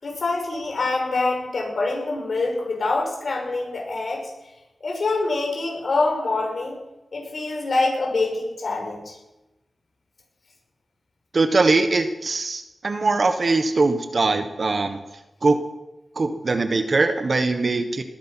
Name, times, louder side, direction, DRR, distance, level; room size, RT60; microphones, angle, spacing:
voice 1, 0.0-4.3 4.8-6.8 7.1-9.1, left 3 dB, 65° left, 1 dB, 5.8 m, -25 dB
voice 2, 11.3-15.0 15.4-15.6 16.2-18.0, right 3 dB, 60° right, 8 dB, 1.3 m, -21 dB
20.0 x 10.5 x 5.8 m, 0.98 s
cardioid pair, 60°, 0 cm